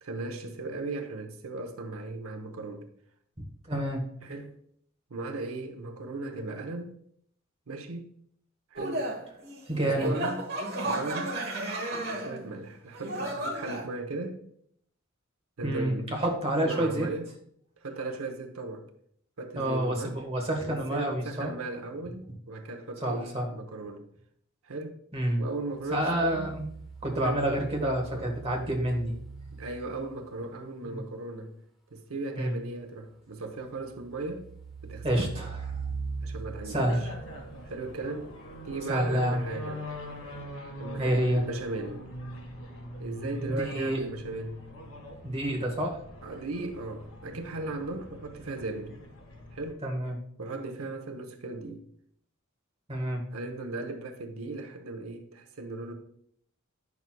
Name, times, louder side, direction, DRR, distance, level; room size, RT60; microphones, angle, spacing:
voice 1, 0.0-2.9 4.2-4.5 5.1-7.0 7.7-8.1 8.7-9.1 9.7-11.4 12.1-14.4 15.6-16.2 16.6-17.3 17.8-18.9 19.4-20.2 20.6-24.1 24.6-25.0 25.4-26.5 27.2-27.4 28.1-28.3 29.5-31.5 31.9-34.5 34.8-35.3 36.2-37.1 37.6-38.3 38.6-39.9 40.8-42.0 43.0-44.6 46.2-49.0 49.5-49.8 50.4-51.9 53.3-55.9, right 2 dB, 90° right, 0.8 m, -37 dB
voice 2, 3.6-4.0 9.7-10.1 15.6-17.1 19.5-21.5 23.0-23.5 25.1-25.4 25.9-26.6 27.0-29.1 30.8-31.0 32.4-32.5 35.0-35.8 36.7-37.0 38.9-39.4 41.0-41.4 43.5-44.0 45.2-46.0 49.8-50.2 52.9-53.2, right 1 dB, 30° right, 1.4 m, -28 dB
sound 1, 8.8-12.5 12.9-13.8, right 1 dB, 50° right, 1.2 m, -33 dB
sound 2, 25.6-30.3 33.6-38.2 40.3-40.4, right 5 dB, ahead, 1.3 m, -41 dB
sound 3, 36.6-49.7, equal, 90° left, 2.1 m, -42 dB
9.2 x 6.0 x 2.3 m
head